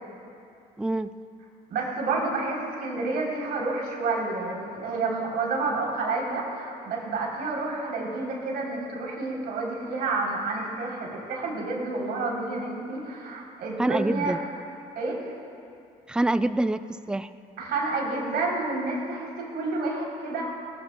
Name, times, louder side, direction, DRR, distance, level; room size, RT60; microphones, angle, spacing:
voice 1, 0.8-1.1 13.8-14.4 16.1-17.3, right 2 dB, 5° right, 12 dB, 0.3 m, -26 dB
voice 2, 1.7-14.4 15.0-15.3 17.6-20.5, right 3 dB, 70° right, -2 dB, 3.5 m, -29 dB
21.0 x 17.5 x 2.3 m, 2.6 s
cardioid pair, 110°, 17 cm